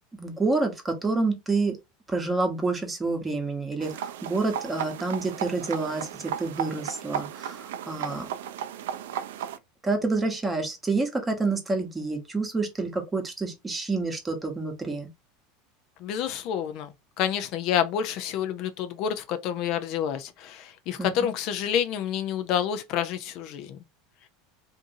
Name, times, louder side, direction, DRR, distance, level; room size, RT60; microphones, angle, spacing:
voice 1, 0.1-1.8 2.1-8.3 9.8-15.1 21.0-21.1, right 3 dB, 15° right, 0.9 m, -28 dB
sound 1, 3.8-9.6, right 9 dB, 85° right, 0.3 m, -35 dB
voice 2, 16.0-23.8, left 9 dB, 55° left, 0.4 m, -28 dB
2.7 x 2.5 x 2.6 m
supercardioid pair, 115°, 0 cm